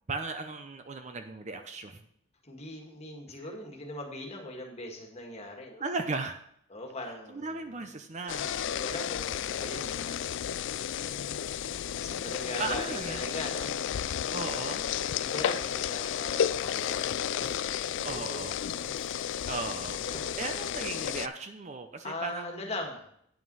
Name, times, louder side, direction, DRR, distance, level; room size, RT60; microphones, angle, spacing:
voice 1, 0.1-2.0 5.8-6.4 7.3-8.5 12.6-13.2 14.3-14.9 18.0-18.6 19.5-20.0 20.4-22.5, right 3 dB, 35° right, 7 dB, 0.6 m, -36 dB
voice 2, 2.4-5.8 6.7-7.5 8.5-10.2 11.0-13.7 14.8-18.9 19.8-21.1 22.0-23.1, left 1 dB, 30° left, 1 dB, 1.8 m, -41 dB
sound 1, 8.3-21.3, left 9 dB, 60° left, 0.3 m, -32 dB
9.3 x 6.0 x 5.5 m, 0.69 s
head